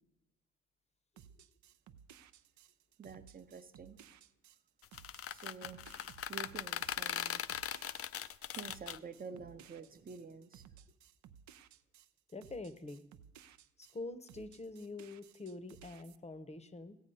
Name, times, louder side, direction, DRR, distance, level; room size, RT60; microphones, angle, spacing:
sound 1, 1.2-14.0 14.3-16.2, right 8 dB, 70° right, 0.6 m, -59 dB
voice 1, 3.0-4.1 5.3-6.0 6.3-7.4 8.2-10.6, right 5 dB, 30° right, 11 dB, 0.7 m, -49 dB
sound 2, 4.8-9.0, left 10 dB, 50° left, 0.5 m, -39 dB
voice 2, 12.3-13.0 13.8-16.9, left 2 dB, 20° left, 13 dB, 0.8 m, -45 dB
14.5 x 8.2 x 5.4 m, 0.88 s
cardioid pair, 90°, 30 cm